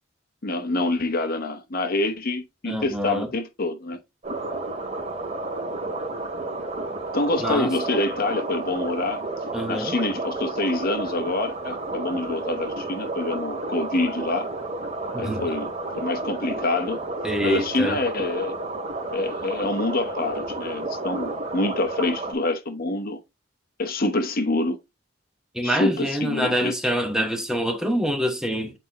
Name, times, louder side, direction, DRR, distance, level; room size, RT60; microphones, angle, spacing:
voice 1, 0.4-4.0 4.5-4.6 7.1-9.2 9.7-14.5 15.2-17.0 17.4-18.5 19.1-23.2 23.8-24.8 25.6-26.8, left 2 dB, 45° left, 1.0 m, -26 dB
voice 2, 2.7-3.3 7.4-7.7 9.5-9.9 15.1-15.4 17.2-18.0 25.5-28.7, equal, 5° right, 0.9 m, -25 dB
sound 1, 4.2-22.3, right 2 dB, 35° right, 2.3 m, -31 dB
8.1 x 4.3 x 2.9 m
head